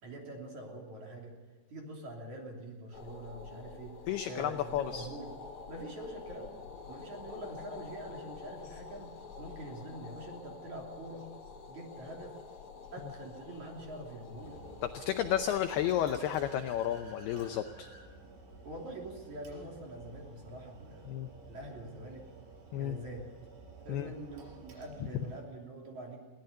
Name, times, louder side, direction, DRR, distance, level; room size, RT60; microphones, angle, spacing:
voice 1, 0.0-1.4 1.7-4.0 4.2-5.3 5.7-6.6 6.9-11.3 11.7-12.4 12.7-14.6 18.6-22.3 22.8-23.2 23.8-26.2, right 1 dB, 40° right, 0 dB, 3.9 m, -45 dB
sound 1, 2.9-15.9, left 5 dB, 45° left, 2.7 m, -48 dB
voice 2, 4.1-5.1 14.9-17.9 21.1-21.3 22.7-23.0 23.9-24.1, left 11 dB, 85° left, 7 dB, 2.3 m, -32 dB
sound 2, 14.4-25.4, right 3 dB, 90° right, 6.9 m, -52 dB
Car / Accelerating revving vroom, 14.9-18.1, equal, 20° right, 3.0 m, -57 dB
22.0 x 17.5 x 6.7 m, 1.2 s
omnidirectional pair, 5.6 m